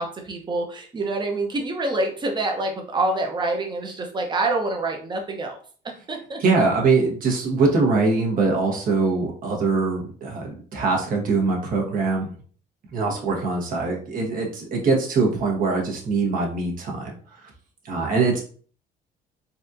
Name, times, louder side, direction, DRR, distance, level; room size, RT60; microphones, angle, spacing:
voice 1, 0.0-5.6 6.1-6.4, right 2 dB, 25° right, 2 dB, 0.8 m, -26 dB
voice 2, 6.4-12.3 12.9-17.1 17.8-18.4, right 3 dB, 55° right, 0 dB, 1.2 m, -22 dB
4.0 x 2.4 x 2.7 m, 0.43 s
cardioid pair, 110°, 17 cm